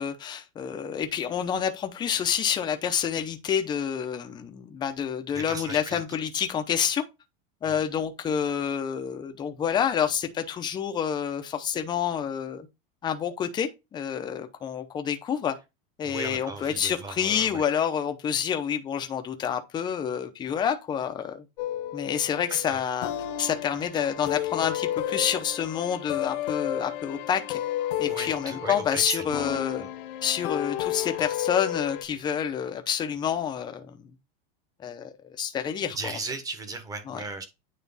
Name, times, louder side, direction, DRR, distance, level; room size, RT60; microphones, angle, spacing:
voice 1, 0.0-7.0 7.6-12.7 13.0-15.6 16.0-21.4 21.9-23.1 23.4-27.6 28.0-29.8 30.2-34.0 34.8-36.1 37.1-37.2, left 8 dB, 15° left, 0.6 m, -28 dB
voice 2, 5.3-6.0 7.6-7.8 16.0-17.6 22.5-22.8 28.0-29.9 35.8-37.4, right 3 dB, 10° right, 1.0 m, -37 dB
sound 1, 21.6-32.0, left 12 dB, 60° left, 1.1 m, -32 dB
9.3 x 3.2 x 4.0 m
supercardioid pair, 165°, 30 cm